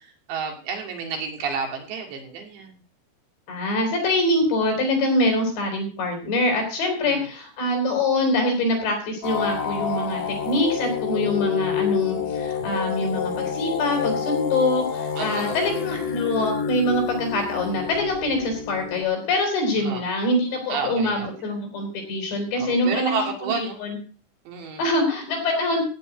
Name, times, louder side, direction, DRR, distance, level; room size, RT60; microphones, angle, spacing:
voice 1, 0.3-2.7 7.0-7.2 15.2-15.6 19.8-20.0 20.7-21.3 22.6-23.8 24.5-24.8, right 5 dB, 90° right, 2 dB, 4.9 m, -30 dB
voice 2, 3.5-24.0 24.8-25.8, left 1 dB, 85° left, 3 dB, 6.2 m, -24 dB
sound 1, 9.2-19.0, left 7 dB, 60° left, 2.7 m, -28 dB
14.5 x 5.4 x 9.2 m, 0.39 s
omnidirectional pair, 4.9 m